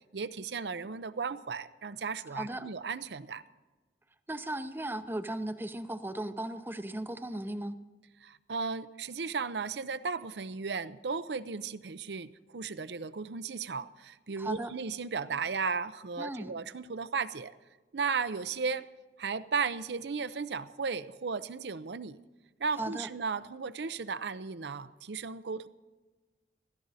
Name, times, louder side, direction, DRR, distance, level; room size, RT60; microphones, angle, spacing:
voice 1, 0.1-3.4 8.2-17.5 17.9-18.8 19.2-22.2 22.6-25.7, right 5 dB, 65° right, 14 dB, 0.6 m, -35 dB
voice 2, 2.3-2.7 4.3-7.8 14.4-14.7 16.2-16.5 22.8-23.1, right 1 dB, 10° right, 11 dB, 0.6 m, -36 dB
16.0 x 14.0 x 4.1 m, 1.3 s
head